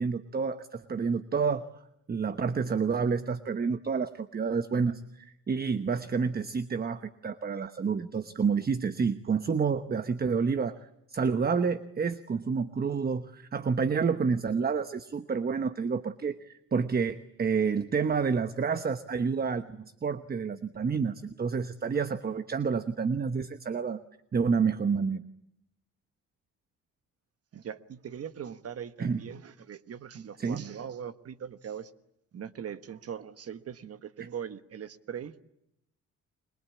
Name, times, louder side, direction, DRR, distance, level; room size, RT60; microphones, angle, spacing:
voice 1, 0.0-1.6 2.1-10.7 11.1-24.0 24.3-25.2 29.0-29.2 30.4-30.6, right 5 dB, 30° right, 11 dB, 1.0 m, -29 dB
voice 2, 27.5-31.9 32.3-35.4, right 8 dB, 50° right, 11 dB, 1.4 m, -40 dB
29.0 x 22.5 x 8.4 m, 0.82 s
cardioid pair, 90°, 30 cm